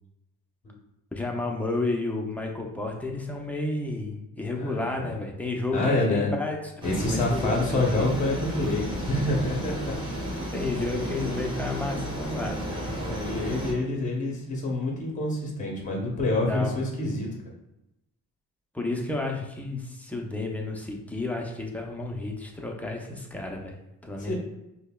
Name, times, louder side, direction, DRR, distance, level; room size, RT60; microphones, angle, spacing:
voice 1, 1.1-8.1 9.3-9.4 10.3-13.0 16.5-16.8 18.7-23.7 24.0-24.3, left 2 dB, 5° left, 0 dB, 0.5 m, -31 dB
voice 2, 4.5-5.1 5.7-6.3 6.8-10.2 12.9-17.3 24.3-24.4, left 2 dB, 25° left, -1 dB, 0.9 m, -27 dB
sound 1, 6.8-13.7, equal, 15° right, 1.2 m, -33 dB
5.2 x 2.2 x 2.3 m, 0.90 s
cardioid pair, 120°, 33 cm